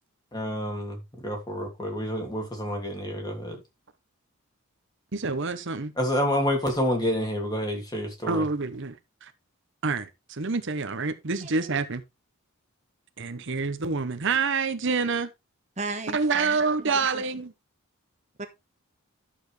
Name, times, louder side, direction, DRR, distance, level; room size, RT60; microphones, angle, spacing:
voice 1, 0.3-3.6 6.0-8.4, equal, 20° left, 2.7 m, -28 dB
voice 2, 5.1-5.9 8.3-9.3 9.8-12.0 13.2-15.3 16.1-17.5, right 4 dB, 55° right, 0.9 m, -27 dB
voice 3, 11.4-11.8 15.8-17.2 18.4-18.5, right 3 dB, 30° right, 1.3 m, -37 dB
12.0 x 7.0 x 3.2 m
head